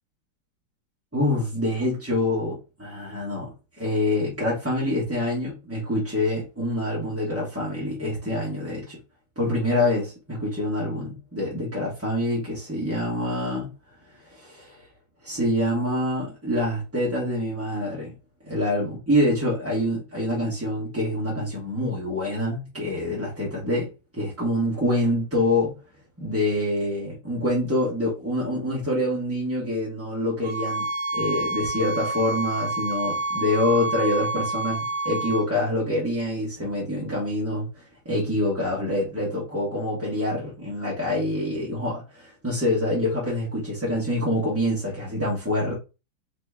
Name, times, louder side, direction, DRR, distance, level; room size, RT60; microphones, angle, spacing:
voice 1, 1.1-3.5 3.8-9.0 9.4-13.7 14.2-14.9 15.2-18.1 18.4-23.9 24.1-25.8 26.2-30.8 31.1-45.7, left 1 dB, 10° right, 1.0 m, -26 dB
sound 1, 30.4-35.5, right 2 dB, 70° right, 1.0 m, -28 dB
4.3 x 3.0 x 3.4 m
omnidirectional pair, 2.3 m